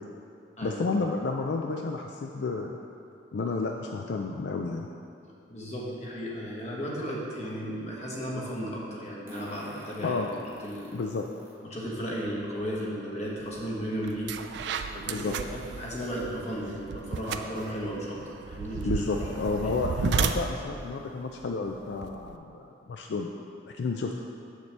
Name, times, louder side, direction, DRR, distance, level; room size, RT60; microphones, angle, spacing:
voice 1, 0.6-2.8 3.3-4.9 10.0-10.3 10.9-11.2 15.1-15.3 18.8-23.3 23.8-24.1, left 4 dB, 70° left, 2 dB, 0.3 m, -31 dB
voice 2, 5.5-10.2 10.6-11.0 11.7-14.7 14.9-19.1 19.6-20.2, equal, 35° left, -4 dB, 1.1 m, -35 dB
Fart, 6.5-6.6 9.3-11.6 12.2-12.3 13.6-13.7 14.0-14.1 14.6-14.8, right 1 dB, 10° right, 0.7 m, -49 dB
sound 1, 13.6-13.7 14.1-22.4, right 6 dB, 70° right, 0.3 m, -34 dB
7.1 x 6.5 x 3.3 m, 2.5 s
head